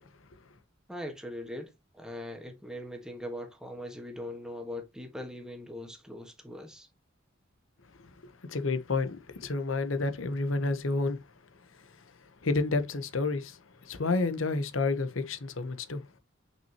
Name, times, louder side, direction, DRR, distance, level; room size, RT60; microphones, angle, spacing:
voice 1, 0.9-6.9, left 1 dB, 5° right, 1.4 m, -41 dB
voice 2, 8.5-11.2 12.4-13.6 13.8-16.0, left 3 dB, 85° left, 1.0 m, -30 dB
6.1 x 5.6 x 2.9 m
head